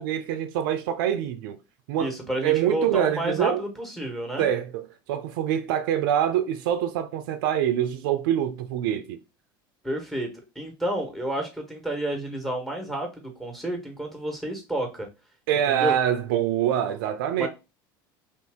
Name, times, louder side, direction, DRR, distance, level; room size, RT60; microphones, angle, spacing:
voice 1, 0.0-1.6 1.9-2.1 2.4-3.6 4.4-9.2 15.5-17.5, right 10 dB, 75° right, 0.5 m, -25 dB
voice 2, 2.0-4.5 9.8-15.1 15.7-15.9 17.3-17.5, right 1 dB, ahead, 1.3 m, -30 dB
2.6 x 2.6 x 3.5 m
hypercardioid pair, 90°, 12 cm